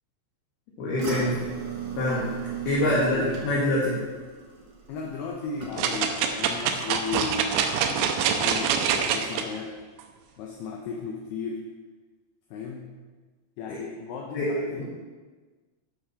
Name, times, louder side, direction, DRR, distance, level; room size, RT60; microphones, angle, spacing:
voice 1, 0.8-1.4 2.0-2.3 2.7-4.0 13.7-13.8 14.3-14.8, left 1 dB, 60° left, -8 dB, 3.8 m, -25 dB
sound 1, 1.0-6.2 6.5-7.0 7.4-7.5, right 7 dB, 60° right, 2.1 m, -36 dB
voice 2, 2.9-3.5 4.9-8.8 9.1-9.8 10.4-11.7 12.5-12.9 13.6-14.8, left 5 dB, 75° left, 0 dB, 2.5 m, -35 dB
sound 2, 5.8-9.4 10.0-10.1, right 7 dB, 80° right, 2.7 m, -25 dB
11.5 x 6.2 x 6.3 m, 1.4 s
omnidirectional pair, 5.6 m